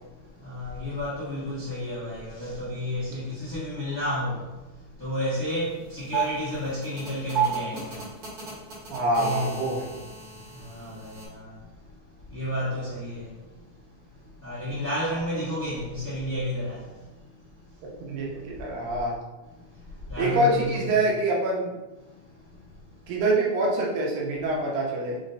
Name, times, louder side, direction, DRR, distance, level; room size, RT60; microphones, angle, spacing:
voice 1, 0.4-4.4 5.0-8.0 9.1-9.6 10.7-11.1 12.3-13.2 14.4-16.8 20.1-21.0, left 1 dB, 75° left, 0.8 m, -31 dB
sound 1, 5.5-5.6 5.9-11.3, right 8 dB, 55° right, 1.4 m, -33 dB
voice 2, 8.9-9.9 18.0-19.2 20.2-21.8 23.1-25.2, right 1 dB, 80° right, 2.5 m, -25 dB
6.1 x 2.2 x 3.8 m
omnidirectional pair, 4.1 m